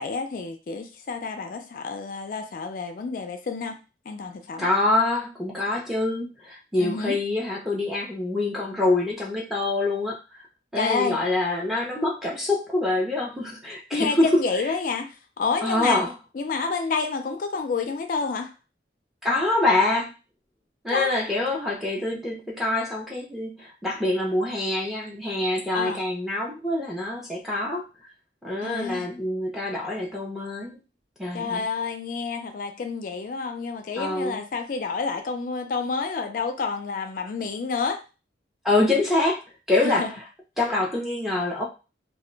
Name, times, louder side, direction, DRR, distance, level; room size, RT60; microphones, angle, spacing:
voice 1, 0.0-3.8 4.1-4.7 6.8-7.2 10.8-11.2 13.9-16.0 16.3-18.5 20.9-21.1 25.7-26.0 28.6-29.1 31.3-38.0 39.8-40.1, left 4 dB, 45° left, 0.3 m, -29 dB
voice 2, 4.6-10.2 10.7-14.3 15.6-16.1 19.2-20.1 20.8-27.9 28.4-30.8 31.2-31.7 34.0-34.4 38.6-39.4 39.7-40.1 40.6-41.6, left 2 dB, ahead, 0.6 m, -25 dB
2.2 x 2.1 x 3.7 m
head